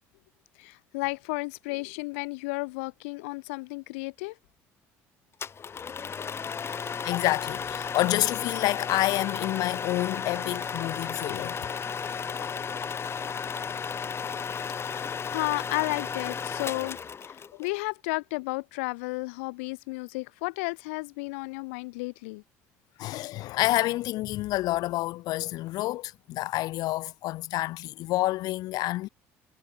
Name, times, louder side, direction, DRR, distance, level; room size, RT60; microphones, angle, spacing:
voice 1, 0.6-4.4 6.7-6.9 12.3-12.5 14.8-17.0 17.2-22.4, left 27 dB, 85° left, 1.6 m, -33 dB
sound 1, 5.4-17.7, left 6 dB, 35° left, 2.7 m, -34 dB
voice 2, 7.0-11.6 23.0-29.1, left 17 dB, 70° left, 0.7 m, -28 dB
supercardioid pair, 80°, 7 cm